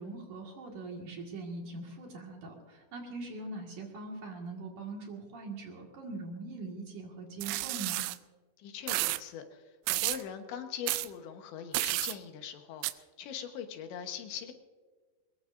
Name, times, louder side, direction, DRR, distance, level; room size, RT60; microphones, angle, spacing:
voice 1, 0.0-8.0, right 3 dB, 55° right, 0 dB, 2.9 m, -42 dB
sound 1, 7.4-8.2 8.9-9.2 9.9-10.2 10.9-11.1 11.7-12.2 12.8-12.9, right 18 dB, 85° right, 2.8 m, -31 dB
voice 2, 8.6-14.5, left 8 dB, 80° left, 6 dB, 3.5 m, -42 dB
22.5 x 21.0 x 2.6 m, 1.4 s
omnidirectional pair, 5.2 m